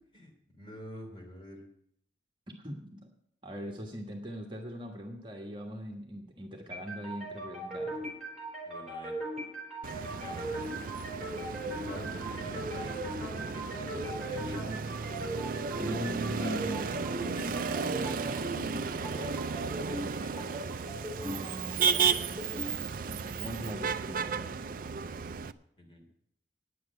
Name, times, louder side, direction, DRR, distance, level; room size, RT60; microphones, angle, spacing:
voice 1, 0.1-1.7 8.6-9.1 10.1-10.5 11.9-14.7 16.4-17.0 17.5-18.4 18.9-19.4 19.9-20.6 25.8-26.1, left 1 dB, 30° left, 0 dB, 3.3 m, -47 dB
voice 2, 2.6-3.1 3.4-8.0 15.8-16.8 21.2-24.6, equal, 25° right, 0 dB, 1.4 m, -41 dB
sound 1, 6.7-22.7, right 1 dB, ahead, 4.8 m, -39 dB
Motor vehicle (road), 9.8-25.5, right 5 dB, 50° right, 0.4 m, -34 dB
9.6 x 7.7 x 9.2 m, 0.70 s
head